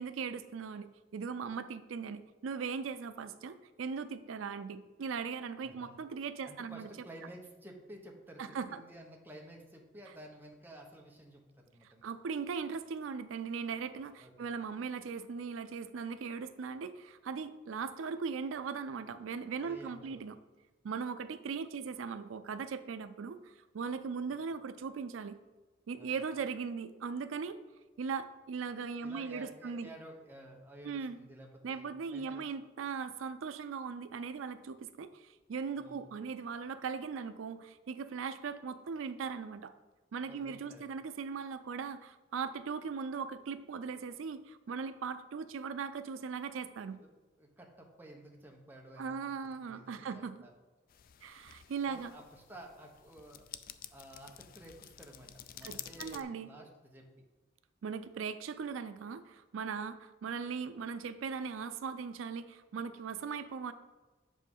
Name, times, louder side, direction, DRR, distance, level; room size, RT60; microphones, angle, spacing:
voice 1, 0.0-6.9 8.4-8.8 12.0-20.4 20.8-25.4 25.9-27.6 28.0-29.9 30.8-31.2 31.6-39.7 40.1-47.0 49.0-50.4 51.2-52.1 55.6-56.5 57.8-63.7, right 5 dB, 85° right, 12 dB, 0.4 m, -39 dB
voice 2, 5.6-6.0 6.4-12.1 14.2-14.3 19.6-20.3 26.0-26.2 29.0-32.5 35.8-36.1 40.2-40.9 47.0-50.5 51.9-53.5 53.9-57.1, right 1 dB, 10° right, 1 dB, 1.0 m, -52 dB
sound 1, 50.9-56.2, left 11 dB, 45° left, 0.3 m, -50 dB
7.5 x 5.2 x 5.4 m, 1.2 s
head